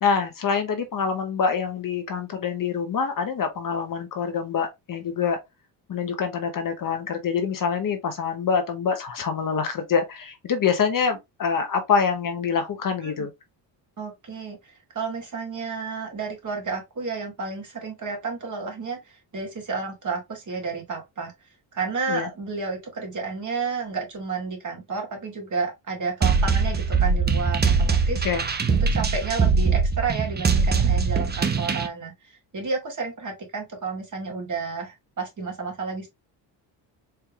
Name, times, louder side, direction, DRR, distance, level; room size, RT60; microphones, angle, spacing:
voice 1, 0.0-5.4 5.9-13.3 22.1-22.3 28.2-28.4, left 6 dB, 45° left, 0.9 m, -25 dB
voice 2, 14.0-21.3 21.7-28.2 28.8-36.1, right 4 dB, 40° right, 2.0 m, -31 dB
sound 1, 26.2-31.9, right 5 dB, 20° right, 0.7 m, -22 dB
4.5 x 3.4 x 2.3 m
cardioid pair, 80°, 45 cm